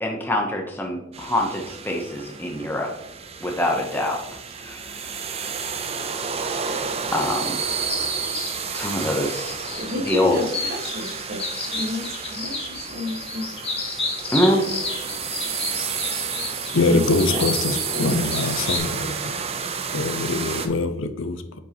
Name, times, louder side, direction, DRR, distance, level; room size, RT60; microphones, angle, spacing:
voice 1, 0.0-2.9 3.4-4.2 4.6-5.7 7.1-7.9 8.7-9.5 10.1-10.4 14.3-14.7, left 1 dB, 10° left, 1 dB, 0.8 m, -25 dB
sound 1, 1.1-20.7, right 6 dB, 30° right, 0.5 m, -31 dB
sound 2, 7.9-18.8, left 4 dB, 30° left, 1.6 m, -31 dB
voice 2, 9.7-11.4 11.7-13.5 16.8-17.0 17.3-18.3 18.6-18.7, left 1 dB, 50° right, 1 dB, 1.5 m, -31 dB
voice 3, 16.7-19.4 19.9-21.6, left 3 dB, 75° left, 10 dB, 0.6 m, -24 dB
9.3 x 5.2 x 2.9 m, 0.85 s
head